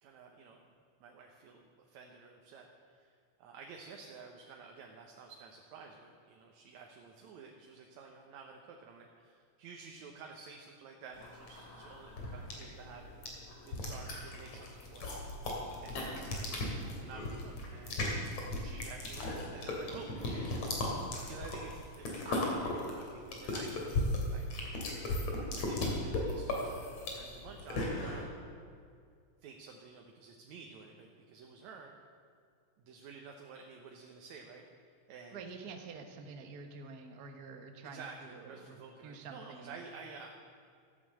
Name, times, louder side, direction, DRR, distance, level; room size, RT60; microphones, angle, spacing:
voice 1, 0.0-0.7 1.0-15.2 15.8-18.0 18.6-20.5 20.8-20.9 21.3-24.0 24.3-24.4 25.6-26.8 27.1-28.2 29.4-31.9 32.8-35.4 37.8-40.3, right 5 dB, 70° right, 1 dB, 2.3 m, -51 dB
sound 1, 11.2-28.2, left 2 dB, 55° left, 3.7 m, -36 dB
voice 2, 35.3-39.8, right 4 dB, 50° right, 4 dB, 1.1 m, -48 dB
13.5 x 11.0 x 7.7 m, 2.2 s
omnidirectional pair, 3.5 m